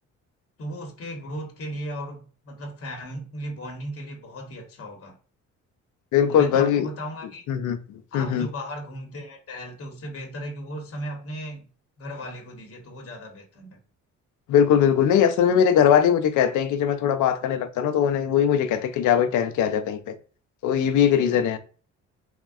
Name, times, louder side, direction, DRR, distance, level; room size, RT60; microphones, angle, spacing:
voice 1, 0.6-5.2 6.2-7.4 8.1-11.7 12.0-13.8, equal, 50° left, 0.9 m, -36 dB
voice 2, 6.1-6.9 7.5-8.5 14.5-20.1 20.6-21.6, left 8 dB, 75° left, 0.5 m, -21 dB
3.5 x 2.2 x 2.3 m
cardioid pair, 90°, 30 cm